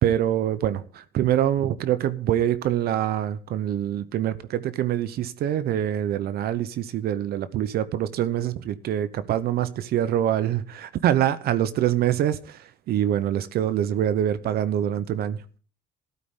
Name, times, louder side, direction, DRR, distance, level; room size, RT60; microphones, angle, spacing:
voice 1, 0.0-15.4, right 11 dB, 65° right, 0.8 m, -25 dB
14.0 x 12.0 x 3.7 m
cardioid pair, 110°, 17 cm